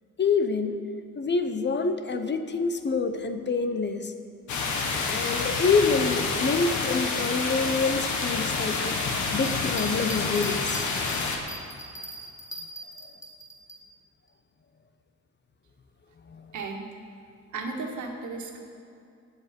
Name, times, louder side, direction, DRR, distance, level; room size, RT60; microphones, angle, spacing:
voice 1, 0.2-0.8 1.2-4.1 5.0-8.9 9.3-11.1 16.3-16.4, left 4 dB, 35° left, 8 dB, 1.0 m, -26 dB
sound 1, 4.5-11.4, left 4 dB, 75° left, 1.8 m, -28 dB
sound 2, 9.4-13.8, right 1 dB, 10° left, 1.9 m, -41 dB
voice 2, 16.5-16.9 17.5-18.6, right 3 dB, 70° right, 2 dB, 1.8 m, -34 dB
18.5 x 8.3 x 5.3 m, 2.5 s
cardioid pair, 90°, 30 cm